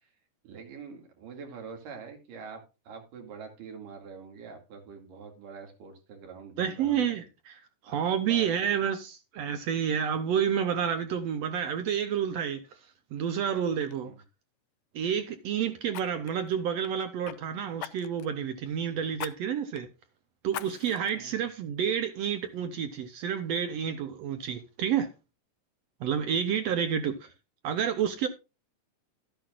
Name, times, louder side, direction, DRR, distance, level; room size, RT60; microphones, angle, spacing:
voice 1, 0.4-7.2 7.9-8.6 14.0-14.2 19.0-19.1 21.2-21.4, right 5 dB, 85° right, 3.9 m, -45 dB
voice 2, 6.6-7.6 7.8-12.6 13.1-14.1 14.9-19.9 20.4-25.1 26.0-27.3 27.6-28.3, right 8 dB, 70° right, 1.7 m, -29 dB
Fire, 13.2-13.4 13.8-14.0 15.9-17.4 17.8-18.3 19.2-19.3 19.8-19.9 20.5-21.1 21.6-21.7, left 14 dB, 85° left, 1.5 m, -41 dB
12.5 x 10.5 x 2.5 m
omnidirectional pair, 3.7 m